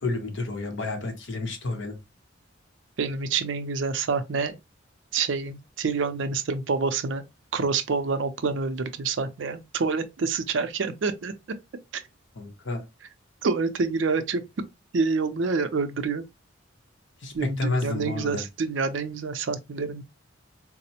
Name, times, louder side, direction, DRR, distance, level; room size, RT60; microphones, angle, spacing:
voice 1, 0.0-2.0 12.4-12.8 17.2-18.4, left 2 dB, 65° left, 0.8 m, -30 dB
voice 2, 3.0-4.6 5.1-7.2 7.5-11.3 13.4-14.4 14.9-16.2 17.3-20.0, right 4 dB, 65° right, 0.5 m, -27 dB
4.1 x 2.0 x 2.8 m
head